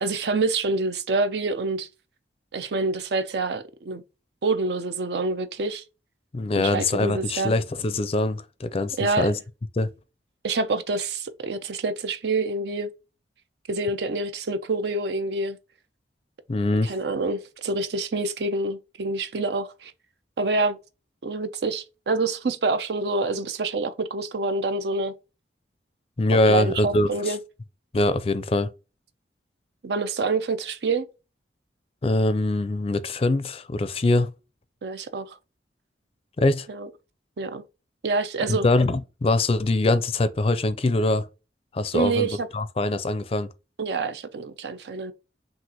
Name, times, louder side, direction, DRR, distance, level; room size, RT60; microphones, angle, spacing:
voice 1, 0.0-1.9 2.5-4.0 4.4-5.8 6.5-7.5 9.0-9.3 10.4-12.9 13.7-15.6 16.8-19.9 20.4-20.8 21.2-25.1 26.5-27.4 29.8-31.1 34.8-35.4 36.7-36.9 37.4-37.6 38.0-38.7 41.9-42.5 43.8-45.1, right 3 dB, 65° right, 0.5 m, -27 dB
voice 2, 6.3-9.4 9.8-9.9 16.5-16.9 26.2-27.3 27.9-28.7 32.0-34.3 36.4-36.7 38.5-41.3 41.7-43.5, left 2 dB, 35° left, 0.4 m, -23 dB
6.1 x 2.5 x 2.9 m
head